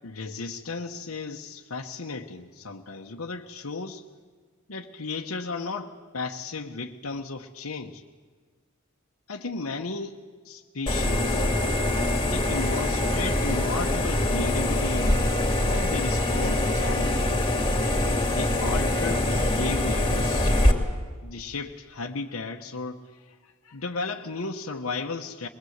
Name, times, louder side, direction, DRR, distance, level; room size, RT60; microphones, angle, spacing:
voice 1, 0.0-4.0 4.7-8.0 9.3-10.2 10.4-11.5 12.2-15.2 15.7-17.4 18.3-20.5 21.2-23.3 23.6-25.5, left 3 dB, 90° left, 1 dB, 1.1 m, -34 dB
sound 1, 10.9-20.7, left 1 dB, 25° left, 2.6 m, -24 dB
22.0 x 21.5 x 8.1 m, 1.5 s
head